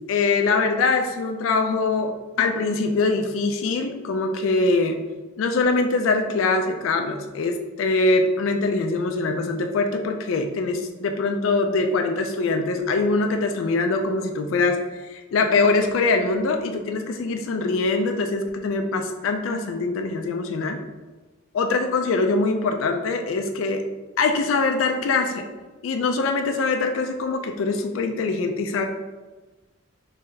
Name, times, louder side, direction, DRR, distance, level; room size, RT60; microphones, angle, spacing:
voice 1, 0.1-5.0 5.4-20.8 21.5-23.8 24.2-25.5 25.8-28.8, left 3 dB, 80° left, 5 dB, 0.3 m, -23 dB
3.2 x 2.7 x 3.7 m, 1.2 s
head